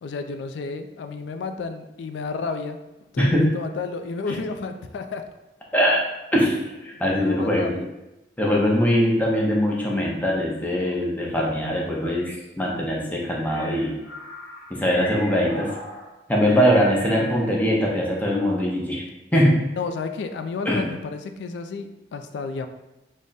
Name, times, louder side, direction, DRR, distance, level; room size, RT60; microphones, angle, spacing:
voice 1, 0.0-2.8 3.1-5.3 7.1-7.9 16.5-16.6 19.8-22.7, left 4 dB, 80° left, 8 dB, 0.3 m, -31 dB
voice 2, 3.2-3.5 5.7-6.0 6.3-7.8 8.4-14.0 14.7-15.7 16.3-19.0 19.3-19.6 20.7-20.9, equal, 10° left, -3 dB, 0.5 m, -21 dB
sound 1, 13.2-17.6 18.0-18.7, left 1 dB, 55° left, 0.7 m, -40 dB
3.4 x 2.1 x 3.9 m, 0.99 s
head